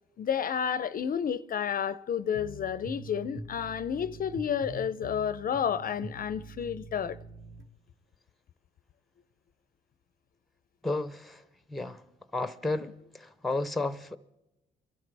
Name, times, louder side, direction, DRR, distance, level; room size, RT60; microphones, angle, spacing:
voice 1, 0.2-7.2, left 8 dB, 45° left, 0.5 m, -31 dB
sound 1, 2.3-7.7, right 2 dB, 65° right, 1.9 m, -44 dB
voice 2, 10.8-11.4 11.7-12.0 12.3-14.2, left 2 dB, ahead, 0.7 m, -32 dB
23.5 x 12.0 x 3.3 m
cardioid pair, 90°, 20 cm